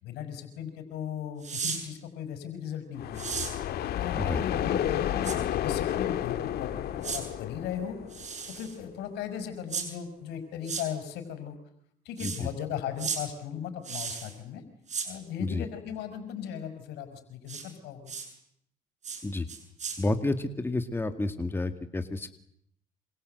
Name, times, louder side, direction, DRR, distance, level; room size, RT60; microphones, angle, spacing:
voice 1, 0.0-3.3 3.9-8.0 8.5-11.6 12.1-14.6 15.0-18.1, left 8 dB, 85° left, 10 dB, 5.6 m, -37 dB
sound 1, 1.4-1.8 3.1-3.5 5.2-5.4 7.0-7.2 8.1-8.7 9.7-9.9 10.6-10.8 12.2-12.4 13.0-13.2 13.8-14.3 14.9-15.1 17.5-17.6 18.1-18.3 19.0-19.2 19.5-20.0, right 6 dB, 45° right, 7.1 m, -34 dB
sound 2, 3.0-8.7, left 11 dB, 70° left, 2.0 m, -31 dB
voice 2, 20.0-22.3, left 2 dB, 15° left, 8 dB, 2.1 m, -30 dB
27.0 x 27.0 x 8.0 m, 0.72 s
cardioid pair, 110°, 17 cm